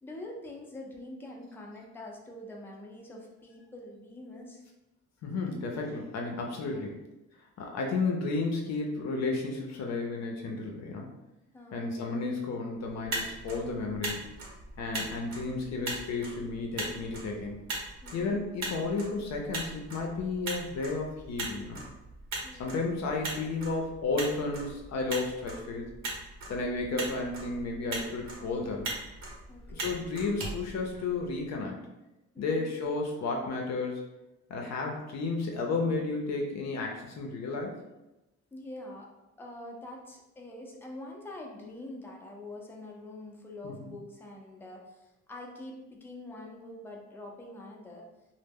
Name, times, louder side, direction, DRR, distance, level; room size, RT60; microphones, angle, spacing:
voice 1, 0.0-4.6 6.6-6.9 11.5-11.8 18.0-18.4 22.4-22.8 29.5-30.0 32.3-32.7 38.5-39.1 39.4-48.1, left 1 dB, 5° left, -1 dB, 0.4 m, -45 dB
voice 2, 5.2-7.0 7.6-11.1 11.7-14.3 14.8-17.6 18.1-21.8 22.6-25.9 26.5-28.9 29.7-31.8 32.4-34.0 34.5-37.8 43.6-43.9, left 3 dB, 60° left, 1 dB, 0.5 m, -32 dB
Motor vehicle (road), 12.9-31.4, right 2 dB, 65° right, 0.9 m, -40 dB
2.1 x 2.0 x 3.4 m, 0.97 s
cardioid pair, 90°, 30 cm